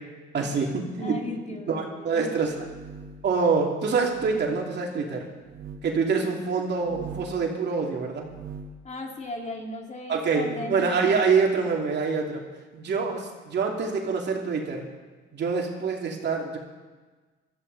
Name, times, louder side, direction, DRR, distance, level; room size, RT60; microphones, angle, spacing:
voice 1, 0.3-1.2 1.7-2.5 3.2-5.3 5.8-8.3 10.1-12.4 12.7-14.9 15.3-16.6, right 5 dB, 60° right, 0 dB, 2.6 m, -26 dB
voice 2, 1.0-2.6 8.8-11.3, left 2 dB, 35° left, 2 dB, 2.2 m, -37 dB
sound 1, 2.3-3.3 4.0-4.4 5.4-5.9 6.7-7.4 8.1-8.8, right 5 dB, 80° right, 1.3 m, -42 dB
19.0 x 13.0 x 4.0 m, 1.3 s
cardioid pair, 90°, 20 cm